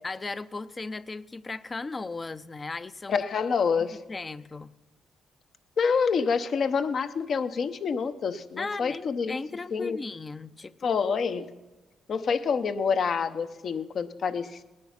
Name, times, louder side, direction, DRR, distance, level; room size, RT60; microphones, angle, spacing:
voice 1, 0.0-3.2 4.1-4.7 8.6-10.7, left 3 dB, 30° left, 16 dB, 0.6 m, -36 dB
voice 2, 3.1-4.0 5.8-9.4 9.7-10.0 10.8-11.5 12.1-14.6, left 5 dB, 55° left, 10 dB, 0.9 m, -27 dB
18.5 x 9.8 x 5.9 m, 1.2 s
supercardioid pair, 70°, 0 cm